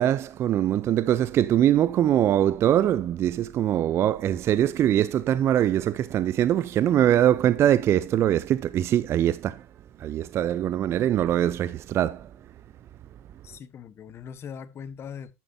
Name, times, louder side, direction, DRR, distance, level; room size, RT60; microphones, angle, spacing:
voice 1, 0.0-9.7 10.0-12.3, right 11 dB, 35° right, 0.4 m, -22 dB
voice 2, 13.4-15.3, left 7 dB, 30° left, 1.1 m, -40 dB
10.5 x 8.9 x 2.7 m
hypercardioid pair, 100°, 8 cm